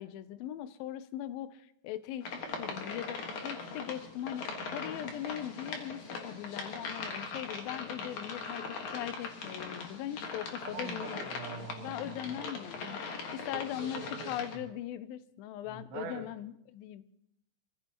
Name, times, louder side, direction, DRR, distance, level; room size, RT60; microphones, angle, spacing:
voice 1, 0.0-11.3 11.8-17.0, left 12 dB, 80° left, 13 dB, 2.2 m, -40 dB
sound 1, 2.2-14.6, left 4 dB, 55° left, 2.5 m, -40 dB
voice 2, 10.6-12.0 12.4-12.5 13.5-14.4 15.7-16.3, right 5 dB, 90° right, 2 dB, 4.0 m, -44 dB
26.0 x 15.5 x 3.0 m, 0.76 s
omnidirectional pair, 4.7 m